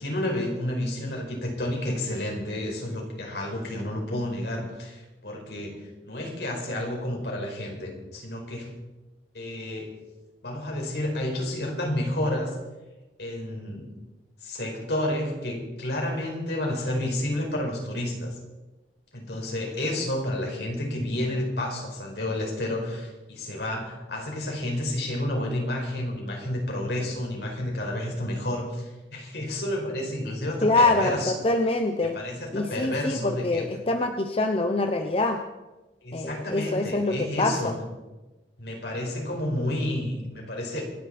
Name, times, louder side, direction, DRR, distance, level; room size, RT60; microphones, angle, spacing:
voice 1, 0.0-8.7 9.3-9.9 10.4-12.5 13.2-13.9 14.4-18.4 19.1-31.3 32.0-33.7 36.0-37.7 38.6-40.8, left 1 dB, 70° left, 0 dB, 5.1 m, -30 dB
voice 2, 30.6-32.2 32.5-35.4 36.1-37.7, left 2 dB, 35° left, 5 dB, 0.8 m, -25 dB
26.5 x 10.5 x 4.3 m, 1.1 s
head